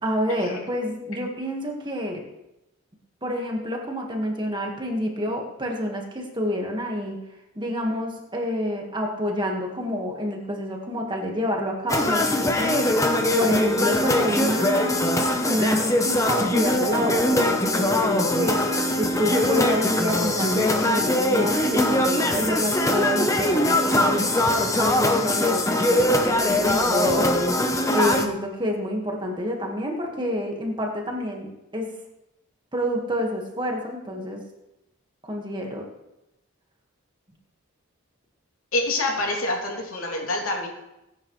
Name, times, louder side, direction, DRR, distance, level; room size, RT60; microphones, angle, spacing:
voice 1, 0.0-2.2 3.2-7.2 7.5-15.0 15.4-24.2 24.5-27.4 27.9-31.9 32.7-34.4 35.2-35.9, equal, 20° right, 1 dB, 1.7 m, -28 dB
sound 1, 11.9-28.3, left 1 dB, 15° left, 0.9 m, -22 dB
voice 2, 38.7-40.7, left 2 dB, 85° left, 0 dB, 2.9 m, -26 dB
18.0 x 10.0 x 3.3 m, 0.93 s
head